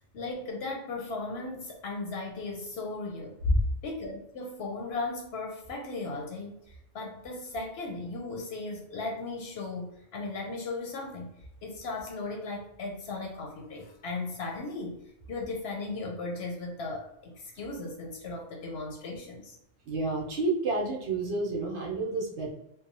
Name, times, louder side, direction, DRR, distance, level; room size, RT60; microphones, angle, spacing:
voice 1, 0.1-3.4 3.8-15.0 15.3-19.6, left 3 dB, 65° left, 0 dB, 0.7 m, -37 dB
voice 2, 19.8-22.5, right 2 dB, 65° right, -2 dB, 1.0 m, -29 dB
2.8 x 2.0 x 2.6 m, 0.81 s
omnidirectional pair, 1.3 m